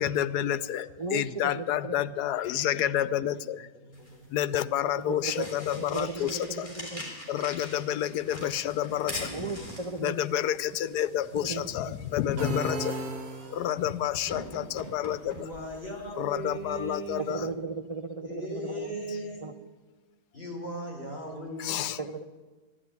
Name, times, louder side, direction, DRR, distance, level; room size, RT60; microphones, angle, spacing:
voice 1, 0.0-3.7 4.3-6.7 7.3-9.3 10.0-13.0 13.5-15.3 16.2-17.5 21.6-22.0, left 11 dB, 80° left, 1.2 m, -29 dB
voice 2, 1.0-2.0 2.8-2.9 5.1-5.5 5.8-7.0 9.3-10.2 11.3-11.7 17.3-18.9 19.4-19.5 22.0-22.2, right 3 dB, 60° right, 0.3 m, -36 dB
voice 3, 3.3-4.2 8.2-8.5 9.3-9.9 11.1-11.3 12.6-13.3 13.6-13.7 15.2-17.4 18.2-19.5 20.3-21.9, right 1 dB, 40° left, 4.5 m, -39 dB
sound 1, 3.9-17.5, left 1 dB, 20° left, 3.5 m, -44 dB
sound 2, 12.4-14.0, right 1 dB, 45° right, 1.4 m, -35 dB
13.0 x 11.5 x 9.5 m
omnidirectional pair, 1.7 m